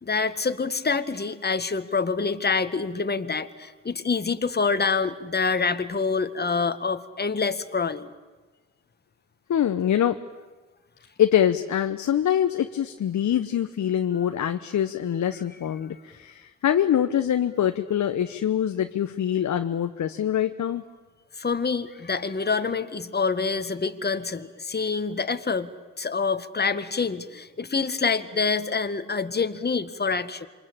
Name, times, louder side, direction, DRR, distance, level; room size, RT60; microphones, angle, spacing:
voice 1, 0.0-8.1 21.3-25.7 26.0-30.5, left 4 dB, 25° left, 10 dB, 1.8 m, -26 dB
voice 2, 9.5-10.2 11.2-20.8, left 10 dB, 50° left, 8 dB, 1.2 m, -24 dB
27.5 x 24.0 x 8.8 m, 1.3 s
hypercardioid pair, 50°, 37 cm